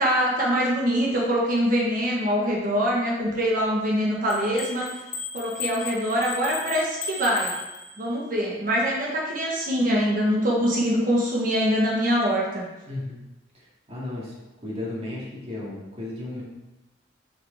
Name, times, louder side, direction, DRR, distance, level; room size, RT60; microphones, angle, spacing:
voice 1, 0.0-4.9 5.3-7.5 8.0-12.7, equal, 50° right, -3 dB, 1.3 m, -24 dB
sound 1, 4.3-8.3, left 4 dB, 45° left, 0.9 m, -36 dB
voice 2, 12.9-13.2 13.9-14.3 14.6-16.4, left 2 dB, 35° right, -5 dB, 2.1 m, -34 dB
8.4 x 4.7 x 3.4 m, 1.0 s
head